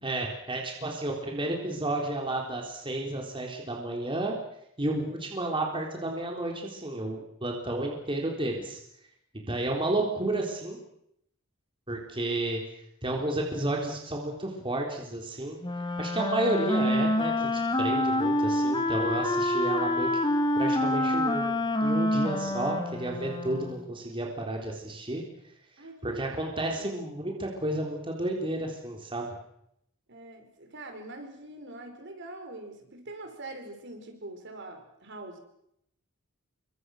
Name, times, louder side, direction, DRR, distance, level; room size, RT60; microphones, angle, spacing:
voice 1, 0.0-4.4 4.8-8.8 9.3-10.8 11.9-12.6 13.0-15.6 16.0-20.1 20.6-21.5 21.8-25.2 26.0-29.3, right 1 dB, 25° right, 0 dB, 3.7 m, -31 dB
Wind instrument woodwind instrument, 15.6-23.8, left 1 dB, 20° left, 2.1 m, -27 dB
voice 2, 25.8-26.9 30.1-35.4, right 2 dB, 60° right, 5 dB, 5.1 m, -44 dB
28.0 x 24.5 x 6.4 m, 0.75 s
head